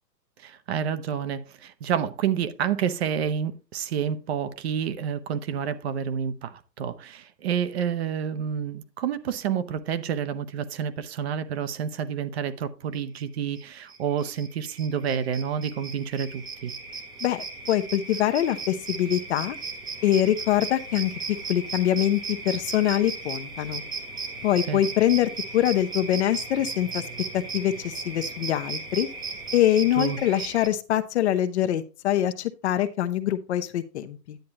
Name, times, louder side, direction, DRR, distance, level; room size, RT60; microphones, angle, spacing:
voice 1, 0.4-16.7 24.7-24.8 30.0-30.2, right 8 dB, 40° right, 0.9 m, -29 dB
sound 1, 13.6-13.7 13.9-30.7, right 4 dB, 10° right, 0.8 m, -36 dB
voice 2, 17.2-19.6 20.0-21.1 21.5-23.8 24.4-27.0 27.3-29.1 29.5-34.4, left 12 dB, 40° left, 0.9 m, -24 dB
10.5 x 8.5 x 2.9 m
hypercardioid pair, 140°, 50 cm